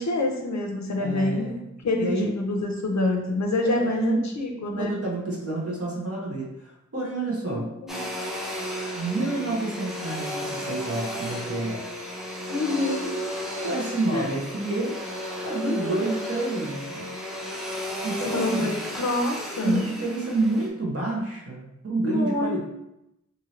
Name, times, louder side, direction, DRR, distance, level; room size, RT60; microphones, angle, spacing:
voice 1, 0.0-1.5 1.8-4.9 7.8-8.1 12.5-13.1 14.1-14.3 15.6-16.0 18.3-19.8 22.0-22.6, left 2 dB, 70° left, 2 dB, 0.6 m, -27 dB
voice 2, 1.0-1.6 2.0-2.3 3.6-4.3 4.8-7.7 9.0-11.9 13.6-15.0 15.4-17.2 18.0-18.7 19.6-22.6, right 2 dB, 55° right, -3 dB, 0.9 m, -29 dB
Domestic sounds home sounds, 7.9-20.7, equal, ahead, 0.6 m, -33 dB
2.7 x 2.7 x 3.0 m, 0.87 s
wide cardioid pair, 75°, 29 cm